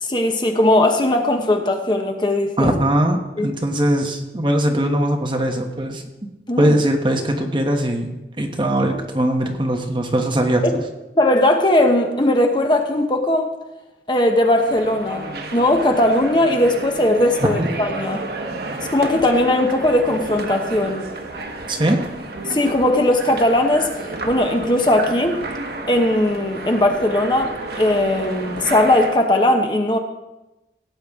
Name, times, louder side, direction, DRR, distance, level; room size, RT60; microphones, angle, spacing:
voice 1, 0.0-2.7 3.4-3.5 6.5-6.8 11.1-13.5 14.1-18.3 18.9-21.1 22.5-23.9 24.2-25.4 25.9-30.0, left 1 dB, 25° left, 4 dB, 0.9 m, -18 dB
voice 2, 2.6-6.0 6.6-8.1 8.4-10.6 17.6-17.7 21.7-22.0, right 1 dB, 25° right, 3 dB, 1.2 m, -20 dB
sound 1, 14.5-29.2, right 2 dB, 60° right, 1.2 m, -31 dB
17.0 x 8.5 x 3.6 m, 1.0 s
head